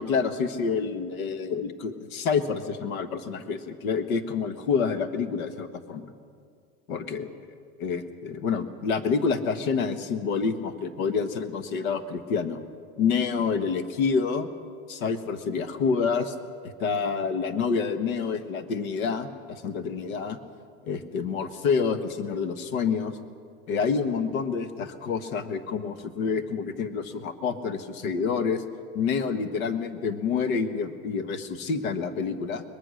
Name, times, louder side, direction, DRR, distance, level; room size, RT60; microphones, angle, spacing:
voice 1, 0.0-6.1 6.9-7.4 7.8-12.6 13.0-14.5 14.9-16.3 16.6-20.4 20.8-23.2 23.7-28.6 28.9-32.6, left 5 dB, 65° left, 9 dB, 1.7 m, -28 dB
22.5 x 21.5 x 6.5 m, 2.2 s
supercardioid pair, 170°, 44 cm